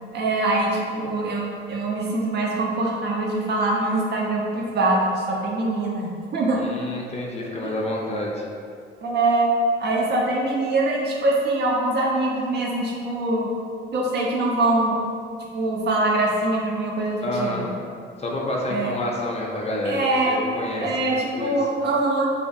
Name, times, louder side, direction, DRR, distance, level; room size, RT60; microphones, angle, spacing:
voice 1, 0.1-6.6 7.6-7.7 9.0-9.5 9.8-13.5 13.9-15.0 15.4-17.7 18.7-18.9 19.8-20.4 20.8-22.3, right 2 dB, 60° right, -3 dB, 0.5 m, -23 dB
voice 2, 6.5-8.5 17.2-17.7 18.2-21.6, left 1 dB, 30° left, -2 dB, 0.4 m, -28 dB
2.5 x 2.3 x 2.5 m, 2.3 s
cardioid pair, 90°, 20 cm